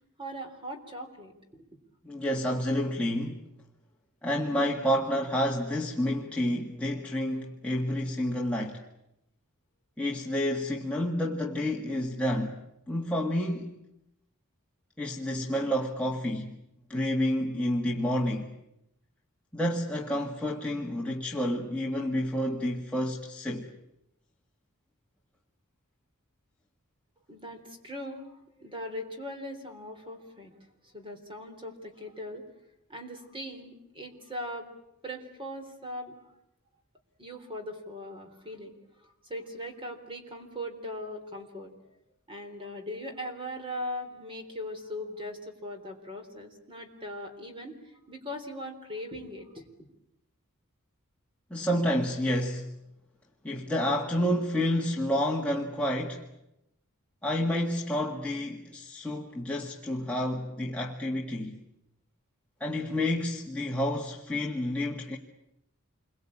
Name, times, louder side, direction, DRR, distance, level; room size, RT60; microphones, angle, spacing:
voice 1, 0.2-1.6 27.3-30.5 30.8-32.5 32.9-34.7 35.0-36.1 37.2-38.7 39.0-41.7 42.3-47.8 48.1-49.6, equal, 25° right, 3.8 m, -40 dB
voice 2, 2.0-3.4 4.2-8.8 10.0-12.6 12.9-13.7 15.0-16.6 16.9-18.5 19.5-23.7 51.5-52.7 53.4-56.2 57.2-61.6 62.6-65.2, left 1 dB, 5° left, 1.9 m, -29 dB
28.0 x 23.0 x 8.7 m
head